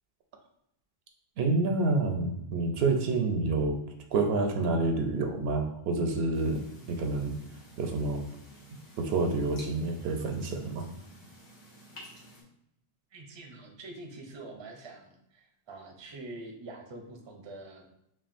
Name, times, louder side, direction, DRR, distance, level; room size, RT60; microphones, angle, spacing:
voice 1, 1.4-3.8 4.1-6.6 6.9-7.4 7.8-8.2 9.0-10.9, right 3 dB, 75° right, 4 dB, 0.8 m, -28 dB
sound 1, 6.3-12.4, equal, 90° left, 1.4 m, -52 dB
voice 2, 13.1-17.8, right 2 dB, 35° right, 3 dB, 0.5 m, -45 dB
5.8 x 2.4 x 2.5 m, 0.79 s
omnidirectional pair, 1.1 m